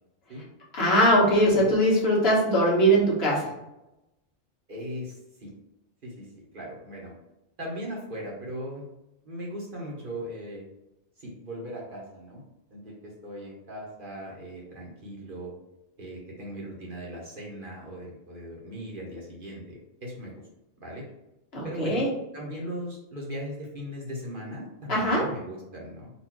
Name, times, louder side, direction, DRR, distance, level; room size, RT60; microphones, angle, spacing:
voice 1, 0.7-3.5 21.5-22.1 24.9-25.3, equal, 60° left, -5 dB, 1.6 m, -21 dB
voice 2, 1.3-1.7 4.7-5.5 6.0-6.3 6.5-7.1 7.6-8.9 9.2-10.6 11.2-12.4 12.7-15.5 16.0-20.4 20.8-21.0 21.6-22.1 22.3-26.1, equal, 45° right, -3 dB, 1.2 m, -38 dB
4.2 x 2.6 x 4.5 m, 0.94 s
omnidirectional pair, 1.2 m